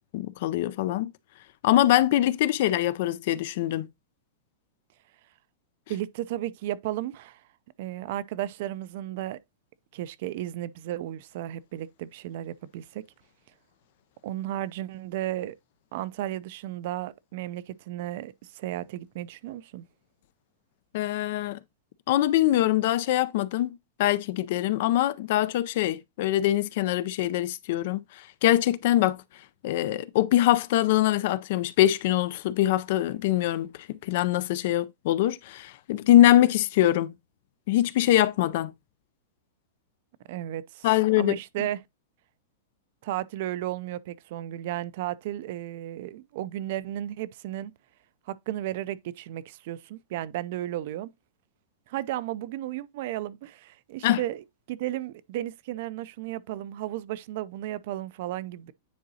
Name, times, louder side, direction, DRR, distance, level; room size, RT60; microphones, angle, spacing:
voice 1, 0.1-1.1 1.6-3.9 20.9-21.6 22.1-29.2 29.6-37.1 37.7-38.7 40.8-41.4 54.0-54.2, left 13 dB, 55° left, 0.4 m, -23 dB
voice 2, 5.9-7.4 7.8-9.4 9.9-13.0 14.2-15.5 15.9-19.9 40.3-41.8 43.0-47.7 48.3-51.1 51.9-58.7, right 13 dB, 55° right, 0.4 m, -34 dB
9.3 x 3.8 x 2.7 m
supercardioid pair, 150°, 0 cm